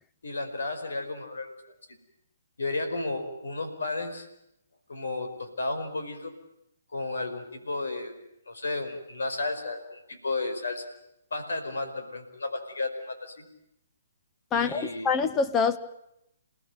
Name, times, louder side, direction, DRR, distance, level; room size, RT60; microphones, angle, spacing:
voice 1, 0.2-1.5 1.9-2.0 2.6-4.3 4.9-6.3 6.9-8.1 8.5-10.9 11.3-13.4 14.5-15.1, left 2 dB, 75° left, 8 dB, 5.1 m, -33 dB
voice 2, 14.5-15.8, left 5 dB, 20° left, 11 dB, 1.6 m, -25 dB
28.5 x 18.5 x 9.3 m, 0.81 s
figure-of-eight pair, 135°, 0 cm